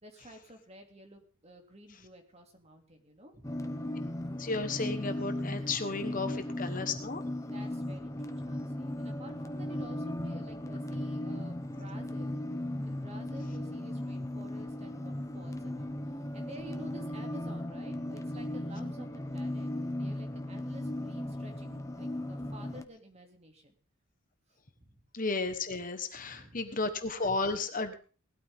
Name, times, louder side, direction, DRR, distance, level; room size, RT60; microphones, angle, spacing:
voice 1, 0.0-3.5 7.5-12.4 12.8-16.0 16.3-23.7 24.8-25.1 26.1-26.7, right 1 dB, 30° right, 4 dB, 2.7 m, -51 dB
sound 1, 3.4-22.8, left 1 dB, 15° left, 0.9 m, -37 dB
voice 2, 4.4-7.2 25.1-27.9, left 3 dB, 40° left, 8 dB, 1.4 m, -33 dB
19.0 x 13.0 x 3.7 m, 0.37 s
head